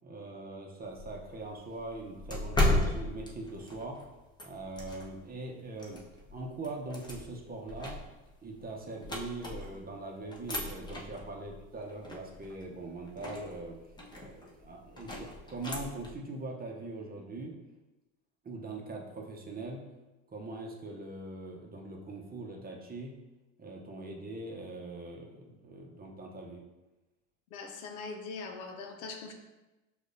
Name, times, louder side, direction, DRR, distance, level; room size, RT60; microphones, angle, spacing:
voice 1, 0.0-4.0 4.4-6.0 6.3-8.0 8.4-13.8 14.1-17.5 18.4-19.8 20.3-23.1 23.6-26.6, right 2 dB, 20° right, 0 dB, 0.8 m, -42 dB
sound 1, 0.8-5.3 5.8-9.9 10.3-16.2, left 1 dB, 10° left, 0.8 m, -36 dB
voice 2, 27.5-29.3, left 4 dB, 90° left, 4 dB, 0.7 m, -42 dB
6.2 x 2.5 x 2.6 m, 1.1 s
supercardioid pair, 90°, 41 cm